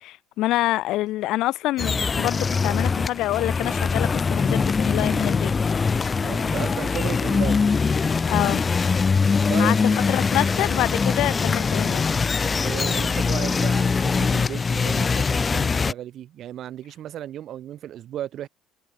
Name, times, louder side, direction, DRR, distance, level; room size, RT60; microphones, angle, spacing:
voice 1, 0.0-5.9 8.3-8.6 9.6-9.8 10.1-12.1, left 16 dB, 55° left, 1.3 m, -26 dB
sound 1, 1.8-15.9, left 5 dB, 15° left, 0.4 m, -22 dB
voice 2, 6.2-7.6 9.5-10.1 12.5-18.5, right 11 dB, 40° right, 1.5 m, -35 dB
cardioid pair, 175°, 0 cm